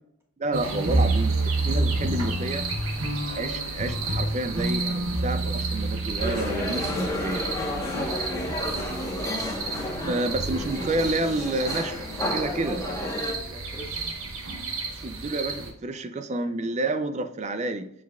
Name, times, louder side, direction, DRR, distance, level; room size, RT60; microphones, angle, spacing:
voice 1, 0.4-2.7 3.4-7.5 10.0-12.8 15.0-17.9, right 2 dB, 30° right, 9 dB, 0.5 m, -29 dB
sound 1, 0.5-15.7, right 2 dB, 70° right, 1.1 m, -29 dB
voice 2, 3.2-3.6 7.6-9.0 12.3-14.3, left 1 dB, 10° right, -2 dB, 1.6 m, -39 dB
sound 2, 6.2-13.3, left 1 dB, 15° left, 1.1 m, -31 dB
7.1 x 6.1 x 2.3 m, 0.80 s
head